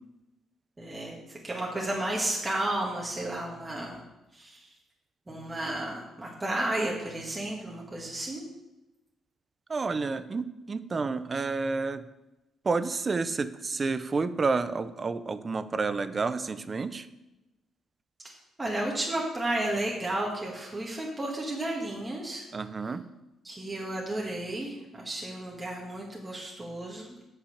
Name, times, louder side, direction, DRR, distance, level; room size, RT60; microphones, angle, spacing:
voice 1, 0.8-4.0 4.3-4.7 5.3-8.4 18.6-22.5 23.4-27.3, right 1 dB, 20° right, -3 dB, 1.9 m, -33 dB
voice 2, 9.7-12.0 12.6-17.1 22.5-23.0, right 4 dB, 35° right, 13 dB, 0.6 m, -30 dB
8.3 x 5.8 x 6.6 m, 0.99 s
cardioid pair, 90°, 0 cm